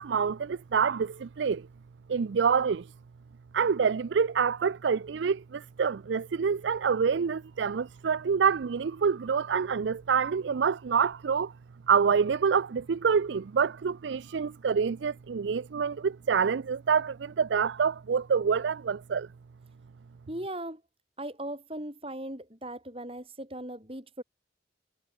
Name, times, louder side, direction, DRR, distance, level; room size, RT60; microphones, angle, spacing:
voice 1, 0.0-1.7 2.1-2.9 3.5-11.5 11.9-19.3, right 6 dB, 80° right, 0.4 m, -27 dB
voice 2, 20.3-20.8 21.2-24.2, right 1 dB, 30° right, 5.0 m, -38 dB
head